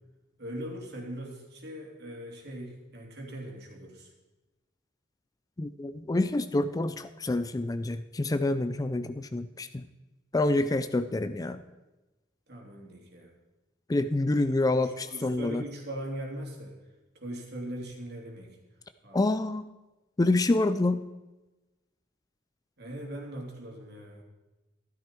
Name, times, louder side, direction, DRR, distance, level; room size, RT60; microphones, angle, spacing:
voice 1, 0.4-4.1 12.5-13.3 14.6-16.7 17.1-18.6 19.0-19.2 22.8-24.2, right 1 dB, 60° right, 0 dB, 3.0 m, -40 dB
voice 2, 5.6-9.8 10.3-11.6 13.9-15.6 19.1-19.7 20.2-21.1, left 2 dB, 20° left, 11 dB, 0.4 m, -27 dB
13.5 x 12.5 x 4.5 m, 1.1 s
head